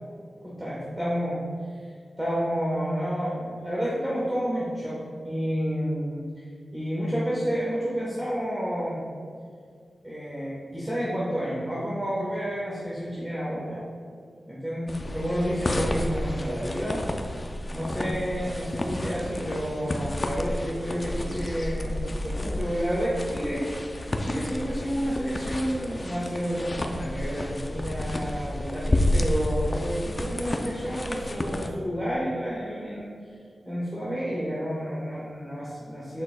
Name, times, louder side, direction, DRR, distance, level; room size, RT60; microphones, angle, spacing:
voice 1, 0.4-1.4 2.2-6.3 6.7-9.0 10.0-13.9 14.5-17.0 17.7-23.8 24.2-33.1 33.6-36.2, equal, 10° right, -8 dB, 1.1 m, -30 dB
sound 1, 14.9-31.7, left 1 dB, 25° left, 0.4 m, -31 dB
7.3 x 6.7 x 2.2 m, 2.2 s
wide cardioid pair, 140°, 0 cm